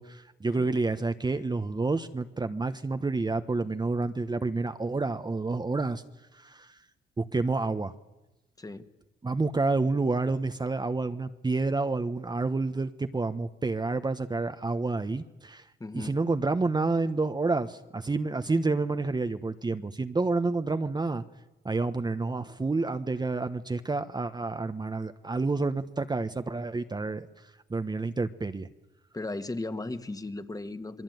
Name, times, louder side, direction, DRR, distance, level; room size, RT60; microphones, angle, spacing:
voice 1, 0.0-6.0 6.3-6.8 7.2-7.9 9.2-15.7 15.9-21.2 21.6-27.3 27.7-28.7, right 3 dB, 20° right, 9 dB, 1.2 m, -29 dB
voice 2, 15.8-16.2 29.1-31.0, left 2 dB, 20° left, 10 dB, 1.9 m, -36 dB
28.0 x 22.0 x 9.4 m, 0.99 s
cardioid pair, 90°, 20 cm